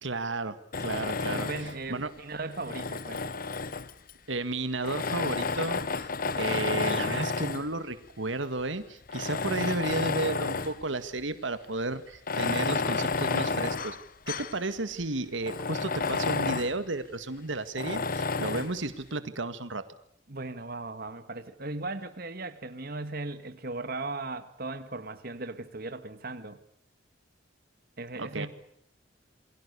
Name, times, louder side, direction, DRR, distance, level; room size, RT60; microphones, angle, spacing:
voice 1, 0.0-1.5 1.9-2.1 4.3-14.0 14.3-19.8 28.2-28.5, right 2 dB, 80° right, 1.9 m, -33 dB
Tools, 0.7-1.8 2.5-4.1 4.8-7.7 8.4-8.5 9.1-10.8 11.2-11.3 12.1-14.6 15.0-15.1 15.4-16.8 17.8-18.8, left 4 dB, 50° left, 1.2 m, -31 dB
voice 2, 1.3-3.2 20.3-26.6 28.0-28.5, right 2 dB, 50° right, 1.9 m, -37 dB
28.5 x 22.5 x 7.0 m
head